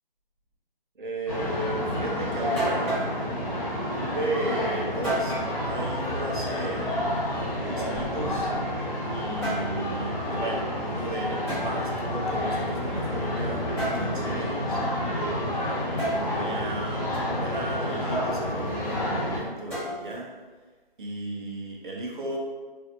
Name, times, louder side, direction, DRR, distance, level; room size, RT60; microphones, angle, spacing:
voice 1, 1.0-3.1 3.9-7.0 7.6-8.5 9.1-14.8 15.5-20.3 21.0-22.4, right 1 dB, 60° right, -1 dB, 0.7 m, -35 dB
sound 1, 1.3-19.4, left 1 dB, 35° left, 1.0 m, -29 dB
sound 2, 2.6-3.1 5.0-5.5 7.2-8.6 9.2-9.7 11.5-11.7 13.8-14.1 16.0-16.2 19.7-20.2, right 1 dB, 15° left, 0.9 m, -31 dB
2.6 x 2.5 x 2.5 m, 1.3 s
hypercardioid pair, 170°, 29 cm